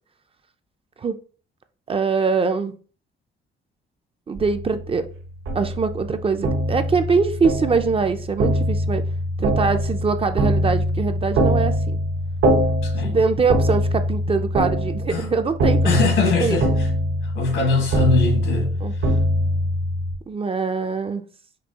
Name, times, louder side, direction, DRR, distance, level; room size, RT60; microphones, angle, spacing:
voice 1, 1.9-2.7 4.3-5.1 5.5-9.0 9.4-12.0 13.0-16.1 16.4-16.6 18.8-18.9 20.3-21.2, right 5 dB, 30° right, 0.4 m, -23 dB
sound 1, 4.4-20.1, equal, 80° right, 1.0 m, -23 dB
voice 2, 12.8-13.2 15.1-15.3 15.8-16.7 17.2-18.8 19.1-19.2, left 3 dB, 80° left, 1.5 m, -22 dB
5.2 x 2.7 x 2.8 m
cardioid pair, 90°, 20 cm